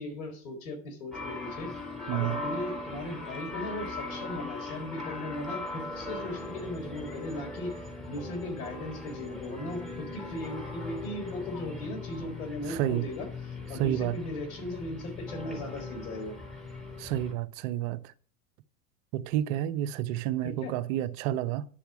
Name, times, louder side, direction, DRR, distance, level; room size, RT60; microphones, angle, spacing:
voice 1, 0.0-1.7 2.1-7.7 8.1-13.3 13.7-16.3 20.4-20.7, left 1 dB, 85° left, 4.3 m, -38 dB
sound 1, 1.1-17.3, left 2 dB, ahead, 3.8 m, -39 dB
voice 2, 2.1-2.4 12.7-13.1 13.8-14.2 17.0-18.1 19.1-21.6, right 12 dB, 70° right, 1.0 m, -30 dB
10.0 x 7.1 x 7.1 m
supercardioid pair, 105°, 41 cm